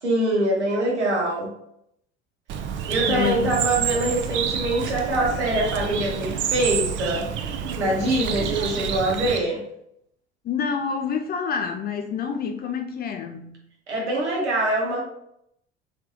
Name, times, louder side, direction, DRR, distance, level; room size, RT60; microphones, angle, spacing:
voice 1, 0.0-1.5 2.9-7.3 7.8-9.6 13.9-15.0, right 1 dB, 80° right, -3 dB, 1.1 m, -24 dB
Bird, 2.5-9.4, right 8 dB, 35° right, 0.4 m, -28 dB
voice 2, 3.1-3.6 10.4-13.5, left 6 dB, 30° left, 5 dB, 0.5 m, -27 dB
3.4 x 3.3 x 2.9 m, 0.74 s
figure-of-eight pair, 65°, 34 cm